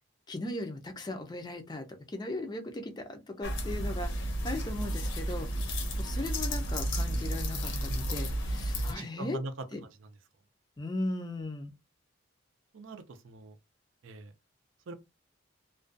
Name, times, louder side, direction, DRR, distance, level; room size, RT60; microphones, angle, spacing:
voice 1, 0.3-9.4 9.7-9.8 10.8-11.7, left 1 dB, 20° left, 0.4 m, -38 dB
sound 1, 3.4-8.9, equal, 70° left, 0.7 m, -32 dB
voice 2, 8.7-9.5 12.7-13.5 14.0-14.3 14.9-15.0, right 2 dB, 75° right, 0.4 m, -42 dB
2.4 x 2.2 x 2.5 m
head